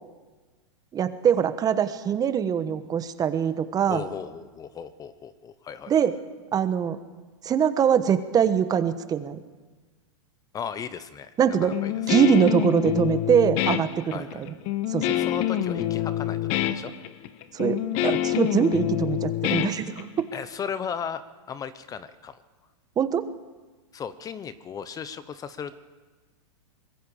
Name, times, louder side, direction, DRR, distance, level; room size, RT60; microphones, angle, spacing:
voice 1, 0.9-4.0 5.9-6.1 6.5-7.0 7.4-9.4 11.4-11.7 12.1-13.9 14.1-14.5 14.9-15.2 17.5-20.3 23.0-23.3, right 8 dB, 25° right, 11 dB, 1.2 m, -23 dB
voice 2, 3.9-5.9 10.5-11.9 14.1-14.5 15.2-16.9 20.3-21.2 21.5-22.4 23.9-25.7, left 7 dB, 20° left, 13 dB, 1.0 m, -36 dB
Guitar, 11.7-20.4, left 12 dB, 45° left, 1.3 m, -26 dB
24.0 x 21.5 x 5.1 m, 1.3 s
hypercardioid pair, 125°, 16 cm